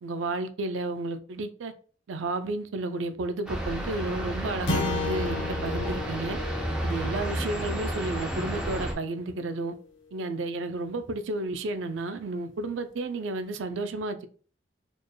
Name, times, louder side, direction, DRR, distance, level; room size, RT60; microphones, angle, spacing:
voice 1, 0.0-1.7 2.1-6.4 6.8-9.7 10.1-14.3, right 2 dB, 85° right, 0.4 m, -32 dB
sound 1, 3.5-8.9, equal, 5° right, 0.7 m, -31 dB
sound 2, 4.7-9.1, left 3 dB, 85° left, 0.9 m, -34 dB
4.3 x 3.1 x 2.2 m
head